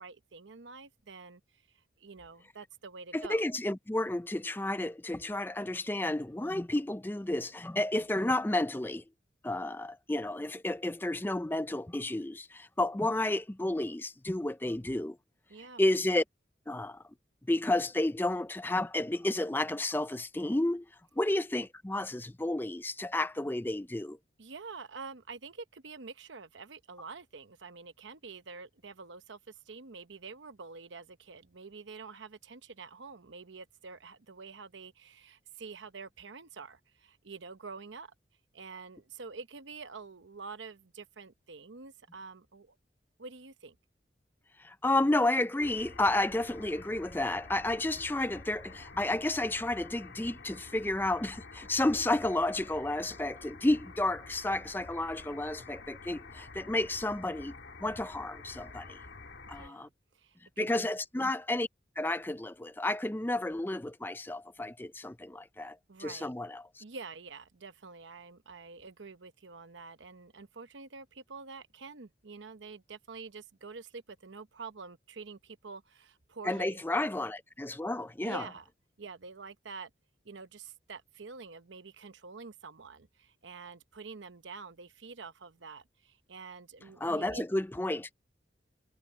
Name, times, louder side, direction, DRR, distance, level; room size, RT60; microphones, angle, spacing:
voice 1, 0.0-1.4 2.0-3.4 15.5-15.8 24.4-38.1 38.5-42.8 43.2-43.8 59.6-60.8 65.9-66.3 66.8-76.8 78.2-78.7 79.0-79.9 80.2-87.4, right 4 dB, 85° right, 0.9 m, -47 dB
voice 2, 3.1-9.0 9.4-15.2 15.8-16.2 16.7-17.0 17.5-20.8 21.2-24.2 44.6-59.0 59.5-59.9 60.6-61.7 62.0-66.8 76.4-78.4 87.0-88.1, left 1 dB, 10° left, 0.4 m, -31 dB
sound 1, 45.6-59.7, left 3 dB, 75° left, 2.4 m, -49 dB
head